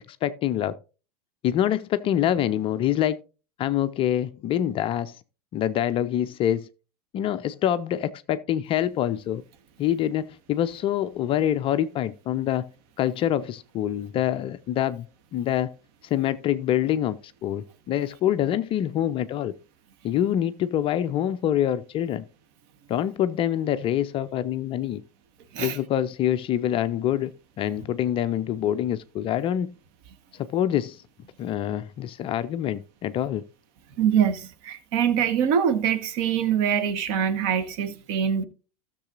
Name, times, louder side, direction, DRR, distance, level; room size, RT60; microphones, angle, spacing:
voice 1, 0.1-0.7 1.4-3.2 3.6-5.1 5.5-6.7 7.1-9.4 9.8-12.6 13.0-15.1 15.3-15.7 16.0-19.5 20.0-22.2 22.9-25.0 25.6-27.3 27.6-29.7 30.5-31.0 31.4-33.4, left 11 dB, 25° left, 0.4 m, -25 dB
voice 2, 34.0-38.4, right 8 dB, 45° right, 1.3 m, -24 dB
16.0 x 6.7 x 2.5 m
figure-of-eight pair, 85°, 20 cm